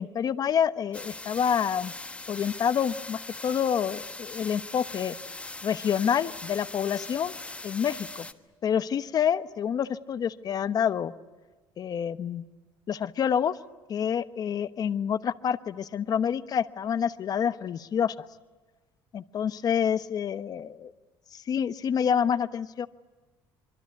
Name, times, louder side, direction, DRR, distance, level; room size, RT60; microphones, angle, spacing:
voice 1, 0.0-1.9 2.3-5.2 5.6-7.3 7.6-8.3 8.6-11.1 11.8-12.4 12.9-13.6 13.9-18.1 19.1-20.9 21.3-22.9, left 8 dB, 45° left, 12 dB, 1.1 m, -27 dB
sound 1, 0.9-8.3, left 2 dB, 15° left, 1.4 m, -41 dB
26.0 x 24.0 x 9.5 m, 1.3 s
cardioid pair, 120°, 9 cm